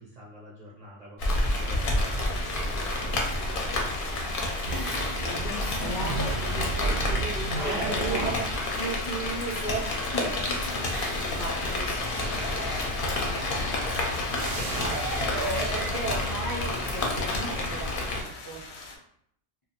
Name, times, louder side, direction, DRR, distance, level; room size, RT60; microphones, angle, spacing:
voice 1, 0.0-3.7 7.0-7.2 7.6-8.4 10.2-10.5 14.9-15.1, right 1 dB, 55° right, -5 dB, 0.4 m, -41 dB
sound 1, 1.2-19.0, left 3 dB, 90° left, 0.9 m, -43 dB
Rain, 1.2-18.2, left 2 dB, 60° left, 0.7 m, -29 dB
voice 2, 4.2-10.2 10.5-13.8 14.1-18.6, right 2 dB, 30° left, -6 dB, 0.4 m, -38 dB
sound 2, 4.6-16.6, right 2 dB, 85° right, 0.9 m, -35 dB
2.5 x 2.2 x 2.8 m, 0.69 s
omnidirectional pair, 1.1 m